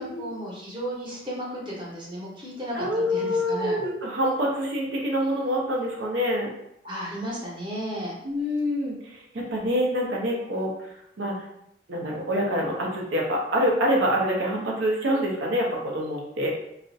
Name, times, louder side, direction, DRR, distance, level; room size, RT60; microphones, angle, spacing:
voice 1, 0.0-3.8 6.8-8.2, equal, 25° right, -5 dB, 0.7 m, -34 dB
voice 2, 2.7-6.5 8.2-11.4 11.9-16.5, equal, 85° right, -1 dB, 0.6 m, -26 dB
2.3 x 2.0 x 2.6 m, 0.79 s
head